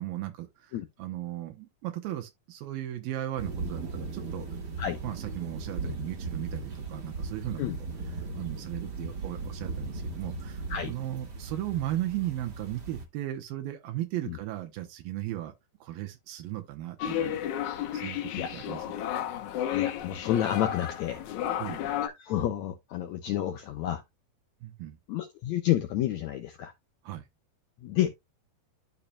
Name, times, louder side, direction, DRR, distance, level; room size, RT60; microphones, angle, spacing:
voice 1, 0.0-4.5 5.0-7.6 8.1-15.5 15.8-17.4 17.9-18.9 21.6-21.9 24.6-25.0 27.0-27.2, right 14 dB, 85° right, 2.7 m, -36 dB
sound 1, 3.4-13.0, right 3 dB, 45° right, 1.5 m, -37 dB
sound 2, 17.0-22.1, left 11 dB, 70° left, 2.0 m, -32 dB
voice 2, 19.7-21.2 22.0-24.0 25.1-26.7 27.8-28.1, left 12 dB, 85° left, 1.6 m, -30 dB
12.0 x 4.4 x 2.3 m
omnidirectional pair, 4.2 m